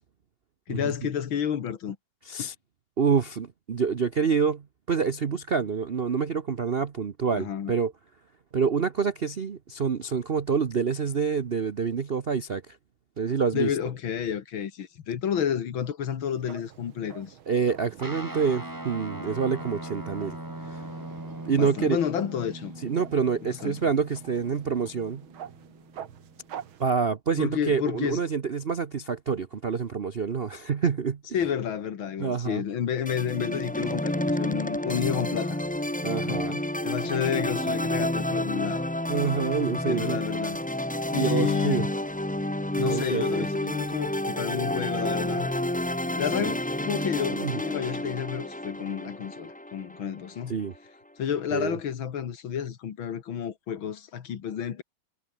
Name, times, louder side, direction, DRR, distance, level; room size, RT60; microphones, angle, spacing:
voice 1, 0.7-2.0 2.4-2.5 7.3-7.7 13.5-17.3 21.6-22.7 23.4-23.9 27.4-28.2 31.3-35.6 36.3-36.5 36.8-38.9 39.9-40.6 41.1-41.9 42.7-45.5 46.1-50.6 51.2-54.8, left 8 dB, 70° left, 2.3 m, -30 dB
voice 2, 3.0-7.9 8.5-12.8 13.2-13.7 17.5-20.4 20.6-20.8 21.4-22.0 22.8-25.2 26.8-31.2 32.2-32.6 33.8-33.9 36.0-36.6 39.1-40.2 41.1-41.9 42.9-43.4 46.4-46.5 47.3-47.5 50.5-50.7 51.5-51.8, right 6 dB, 50° right, 0.7 m, -27 dB
sound 1, 16.2-26.9, right 9 dB, 70° right, 2.2 m, -47 dB
Guitar, 18.0-26.7, right 1 dB, 10° right, 4.6 m, -41 dB
sound 2, 33.1-50.4, left 1 dB, 5° left, 0.6 m, -30 dB
omnidirectional pair, 2.3 m